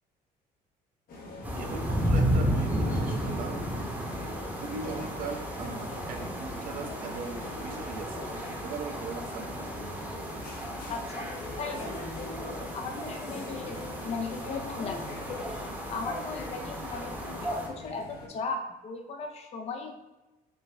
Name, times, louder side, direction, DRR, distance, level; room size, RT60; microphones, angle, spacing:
sound 1, 1.1-18.3, left 2 dB, 60° left, 1.0 m, -42 dB
sound 2, 1.4-17.7, equal, 10° right, 0.9 m, -33 dB
voice 1, 1.6-3.6 4.6-8.2 8.6-9.8, right 5 dB, 55° right, 4 dB, 0.6 m, -39 dB
voice 2, 10.9-11.3 11.6-11.9 12.7-13.8 14.0-17.2 17.5-19.9, left 4 dB, 40° left, 4 dB, 0.5 m, -37 dB
5.1 x 2.4 x 3.2 m, 1.0 s
cardioid pair, 110°, 17 cm